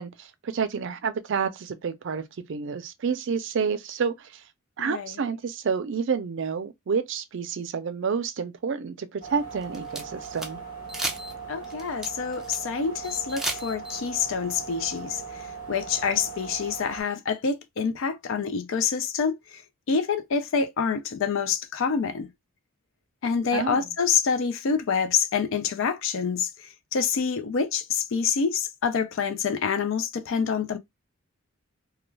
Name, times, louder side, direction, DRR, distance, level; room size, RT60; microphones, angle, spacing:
voice 1, 0.0-4.4 4.8-10.6 23.5-23.9, right 6 dB, 65° right, 0.4 m, -29 dB
voice 2, 4.8-5.1 11.5-19.6 19.9-22.3 23.2-30.8, left 6 dB, 65° left, 0.4 m, -27 dB
sound 1, 9.2-17.0, right 5 dB, 40° left, 1.0 m, -39 dB
sound 2, 9.5-10.5 10.9-11.3 11.6-12.6 13.0-14.0, right 1 dB, ahead, 0.4 m, -33 dB
2.3 x 2.2 x 3.1 m
head